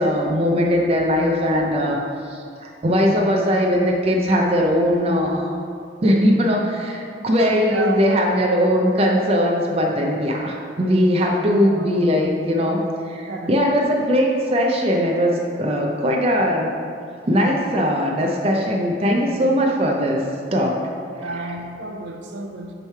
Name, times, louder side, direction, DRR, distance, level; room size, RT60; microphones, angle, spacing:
voice 1, 0.0-2.0 2.3-5.6 6.0-12.8 13.1-16.7 17.3-20.2 20.5-20.8 21.2-21.3, equal, 35° right, 0 dB, 0.5 m, -20 dB
voice 2, 7.5-8.0 11.2-12.2 13.2-13.5 21.2-22.7, right 2 dB, 80° right, 3 dB, 0.7 m, -31 dB
6.7 x 3.2 x 5.6 m, 2.4 s
head